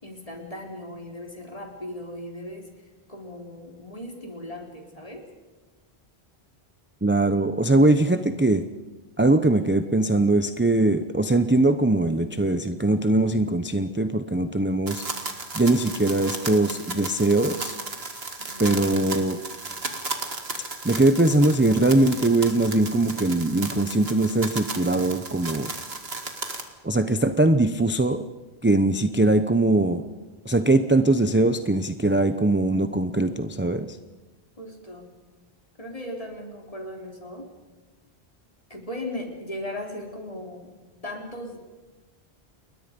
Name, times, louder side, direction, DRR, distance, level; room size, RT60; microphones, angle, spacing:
voice 1, 0.0-2.7 3.1-5.3 18.4-18.8 34.6-35.1 35.8-37.5 38.7-40.7 41.0-41.6, left 1 dB, 35° left, 1 dB, 3.8 m, -37 dB
voice 2, 7.0-8.6 9.2-15.0 15.5-17.8 18.6-19.4 20.8-25.7 26.8-28.2 28.6-30.0 30.4-34.0, right 2 dB, 10° right, 9 dB, 0.7 m, -21 dB
sound 1, 14.9-26.6, right 3 dB, 75° right, 2.3 m, -35 dB
29.5 x 21.5 x 5.3 m, 1.2 s
omnidirectional pair, 1.1 m